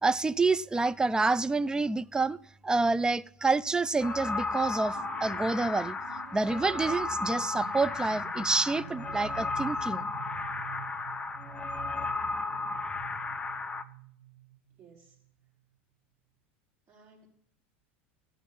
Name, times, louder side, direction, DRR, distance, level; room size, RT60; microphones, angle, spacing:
voice 1, 0.0-2.4 2.6-6.0 6.3-10.1, right 3 dB, 10° right, 0.5 m, -28 dB
sound 1, 4.0-13.8, left 3 dB, 15° left, 1.0 m, -34 dB
sound 2, 4.9-15.3, right 12 dB, 75° right, 0.5 m, -48 dB
voice 2, 14.8-15.2 16.9-17.3, right 4 dB, 40° right, 5.4 m, -57 dB
15.0 x 9.2 x 5.5 m
hypercardioid pair, 85°, 6 cm